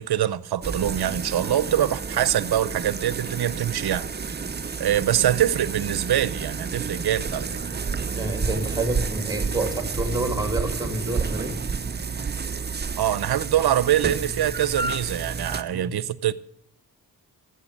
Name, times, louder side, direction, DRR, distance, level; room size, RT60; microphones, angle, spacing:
voice 1, 0.0-4.4 4.8-7.6 13.0-16.3, right 11 dB, 75° right, 0.7 m, -24 dB
sound 1, 0.6-15.6, right 5 dB, 25° right, 0.7 m, -30 dB
voice 2, 8.1-11.6 15.7-15.9, right 2 dB, 10° right, 2.9 m, -28 dB
13.5 x 8.1 x 7.2 m
cardioid pair, 65°, 38 cm